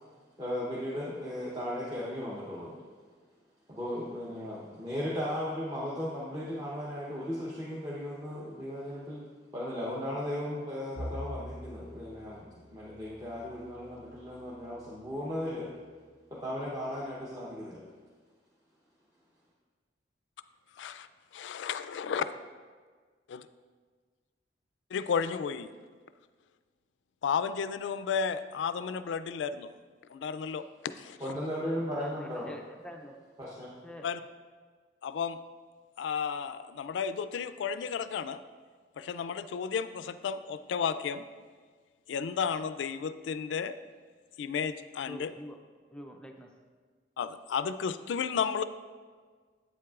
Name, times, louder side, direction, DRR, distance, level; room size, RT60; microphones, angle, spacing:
voice 1, 0.4-2.8 3.7-9.2 9.5-15.7 16.3-17.8 31.2-32.5 33.4-33.7, left 1 dB, 20° right, 0.8 m, -36 dB
Bowed string instrument, 11.0-15.3, equal, 55° right, 0.6 m, -45 dB
voice 2, 20.8-21.1 21.3-22.3 23.3-23.4 24.9-25.7 27.2-29.7 30.1-31.2 34.0-34.2 35.0-35.4 36.0-38.4 39.0-41.2 42.1-43.7 44.4-45.3 47.2-48.6, left 6 dB, 85° left, 0.3 m, -33 dB
voice 3, 31.9-33.2 33.8-34.1 45.0-45.6 45.9-46.5, equal, 5° left, 0.4 m, -45 dB
8.6 x 7.6 x 2.4 m
head